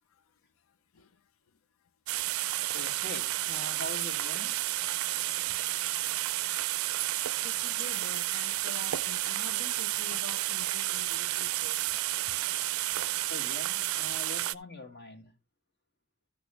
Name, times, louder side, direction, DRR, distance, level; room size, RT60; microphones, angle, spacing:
sound 1, 2.1-14.6, right 16 dB, 80° right, 0.4 m, -31 dB
voice 1, 2.7-4.6 13.3-15.3, left 1 dB, 55° left, 2.0 m, -43 dB
voice 2, 7.4-11.8, left 5 dB, 70° left, 0.6 m, -47 dB
13.5 x 6.3 x 3.4 m
head